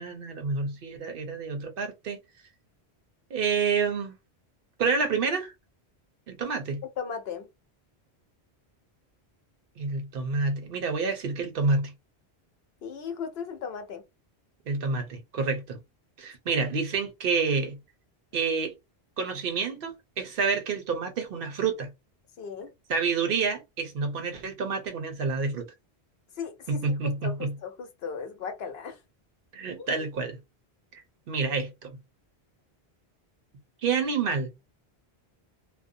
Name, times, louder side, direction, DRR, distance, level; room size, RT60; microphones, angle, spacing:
voice 1, 0.0-2.2 3.3-4.2 4.8-5.5 6.3-6.8 9.8-11.9 14.7-15.8 16.2-17.8 18.3-18.7 19.2-21.9 22.9-25.7 26.7-27.5 29.5-30.4 30.9-31.0 31.3-31.9 33.8-34.5, right 4 dB, 65° right, 0.8 m, -28 dB
voice 2, 7.0-7.5 12.8-14.0 16.5-16.6 22.4-22.7 26.4-26.9 27.2-29.0 29.8-30.1, left 6 dB, 70° left, 0.9 m, -37 dB
2.5 x 2.1 x 2.6 m
omnidirectional pair, 1.1 m